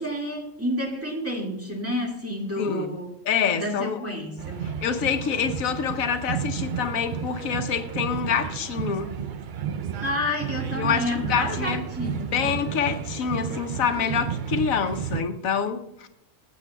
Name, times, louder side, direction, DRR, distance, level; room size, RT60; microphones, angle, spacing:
voice 1, 0.0-3.1 3.5-4.7 10.0-12.5, left 1 dB, 10° right, 1.8 m, -30 dB
voice 2, 2.6-2.9 3.3-4.0 4.8-9.1 10.7-11.8 12.3-16.1, left 7 dB, 85° left, 1.2 m, -26 dB
sound 1, 4.4-15.2, right 8 dB, 55° right, 0.5 m, -32 dB
19.5 x 8.2 x 2.3 m
omnidirectional pair, 1.4 m